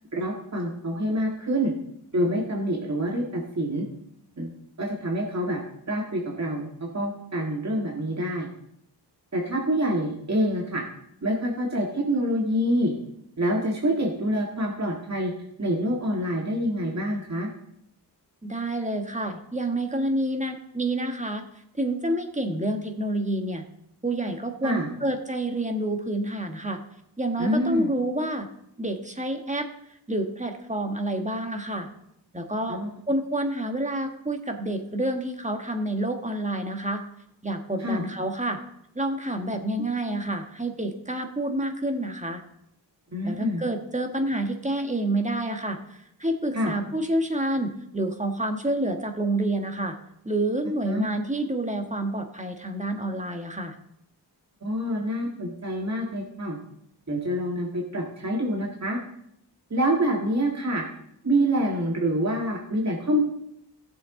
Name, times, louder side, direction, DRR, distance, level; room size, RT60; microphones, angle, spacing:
voice 1, 0.1-1.7 2.1-3.9 4.4-4.5 4.8-5.6 5.9-8.5 9.3-10.8 11.2-12.9 13.4-15.3 15.6-17.5 24.6-24.9 27.4-27.9 32.7-32.9 37.8-38.0 43.1-43.6 46.5-46.7 50.8-51.0 54.6-56.6 57.1-59.0 59.7-60.8 61.2-63.2, equal, 40° right, -1 dB, 1.8 m, -26 dB
voice 2, 18.4-21.4 21.8-23.6 24.0-26.8 27.2-28.5 28.8-29.7 30.1-31.9 32.3-32.8 33.1-37.0 37.4-38.6 38.9-42.4 43.2-45.8 46.2-50.0 50.2-53.7, right 1 dB, 15° right, 5 dB, 1.5 m, -28 dB
16.5 x 7.0 x 3.8 m, 0.75 s
wide cardioid pair, 70°, 43 cm